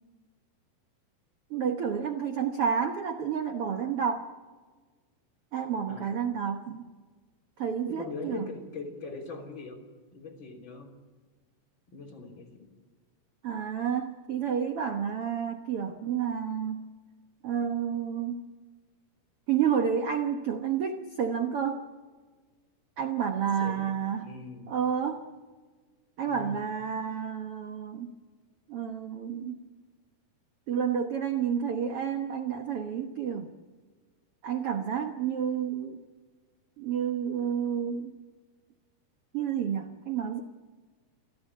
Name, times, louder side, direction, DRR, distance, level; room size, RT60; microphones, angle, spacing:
voice 1, 1.5-4.3 5.5-6.8 7.6-8.4 13.4-16.9 17.4-18.5 19.5-21.9 23.0-24.3 24.7-25.2 26.2-28.1 28.7-29.6 30.7-33.5 34.4-36.0 36.8-38.2 39.3-40.4, right 7 dB, 70° right, 6 dB, 1.4 m, -30 dB
voice 2, 5.9-6.2 7.9-9.8 10.1-10.9 11.9-12.6 23.4-23.9 24.2-24.8 26.3-26.6, left 3 dB, 30° left, 1 dB, 3.8 m, -41 dB
29.0 x 12.5 x 8.4 m, 1.4 s
omnidirectional pair, 4.3 m